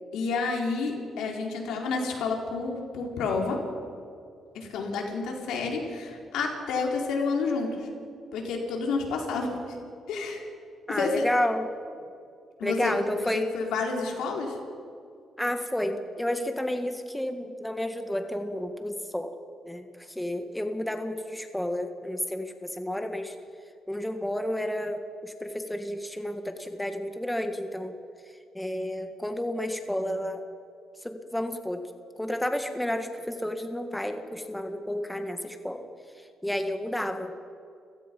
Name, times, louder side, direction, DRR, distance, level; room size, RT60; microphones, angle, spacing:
voice 1, 0.1-3.6 4.5-7.9 8.3-9.8 10.1-10.4 10.9-11.2 12.6-14.6, left 4 dB, 85° left, 1 dB, 4.2 m, -30 dB
voice 2, 10.9-11.7 12.6-13.5 15.4-19.3 19.6-23.3 23.9-27.9 28.5-30.4 31.0-31.8 32.2-35.8 36.4-37.3, left 1 dB, 5° left, 6 dB, 1.7 m, -31 dB
30.0 x 16.5 x 5.4 m, 2.4 s
cardioid pair, 90°, 0 cm